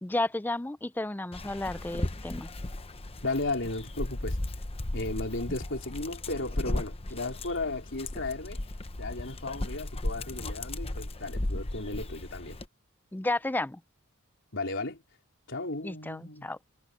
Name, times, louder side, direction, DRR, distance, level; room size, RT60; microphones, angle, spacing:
voice 1, 0.0-2.5 13.1-13.8 15.8-16.7, left 2 dB, 10° left, 0.4 m, -32 dB
Dog, 1.3-12.7, left 1 dB, 25° left, 0.9 m, -36 dB
voice 2, 3.2-4.4 4.9-8.6 9.0-12.6 14.5-15.0 15.5-16.5, left 2 dB, 60° left, 4.3 m, -35 dB
head